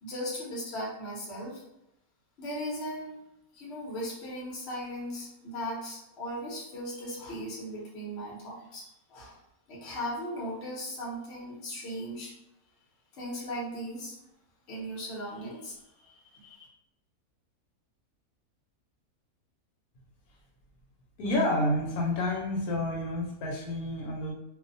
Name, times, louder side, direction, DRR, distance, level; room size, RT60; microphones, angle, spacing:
voice 1, 0.0-1.6 2.4-3.2 3.5-9.4 9.7-12.3 13.1-14.1 14.7-16.7, equal, 50° left, -4 dB, 1.0 m, -38 dB
voice 2, 21.2-24.3, left 1 dB, 85° left, -2 dB, 1.1 m, -29 dB
2.7 x 2.1 x 2.6 m, 0.87 s
omnidirectional pair, 1.5 m